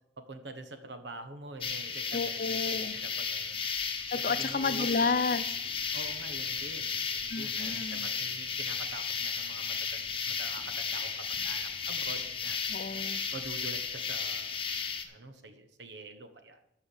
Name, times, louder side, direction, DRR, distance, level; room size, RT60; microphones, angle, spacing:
voice 1, 0.2-3.6 4.3-5.1 5.9-12.6 13.3-14.6 15.1-16.6, right 2 dB, 80° right, 8 dB, 1.3 m, -45 dB
sound 1, 1.6-15.0, left 6 dB, 30° left, 1.1 m, -34 dB
voice 2, 2.1-2.9 4.1-5.4 7.3-8.1 12.7-13.2, left 4 dB, 50° left, 13 dB, 0.6 m, -31 dB
13.5 x 4.9 x 7.2 m, 0.80 s
head